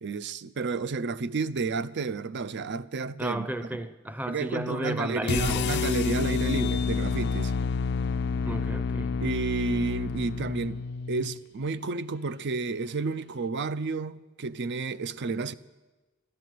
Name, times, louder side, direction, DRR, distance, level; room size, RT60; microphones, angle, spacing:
voice 1, 0.0-3.5 4.3-7.5 9.2-10.8 11.1-15.5, right 3 dB, 50° right, 0.5 m, -31 dB
voice 2, 3.2-5.7 8.5-9.2, right 1 dB, 5° right, 0.6 m, -33 dB
sound 1, 5.3-11.4, left 5 dB, 50° left, 0.5 m, -29 dB
14.0 x 10.5 x 9.3 m
head